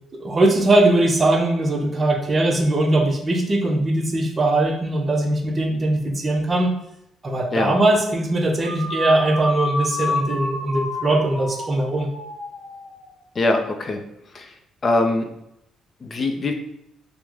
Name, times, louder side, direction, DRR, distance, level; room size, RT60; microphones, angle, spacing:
voice 1, 0.1-6.7 7.2-12.1, right 2 dB, 25° right, 3 dB, 0.5 m, -20 dB
sound 1, 8.6-13.1, left 2 dB, 70° left, 0.7 m, -29 dB
voice 2, 13.4-14.0 14.3-14.5 14.8-15.3 16.0-16.5, left 2 dB, 35° left, 5 dB, 0.4 m, -22 dB
3.0 x 2.0 x 3.5 m, 0.81 s
cardioid pair, 130°, 0 cm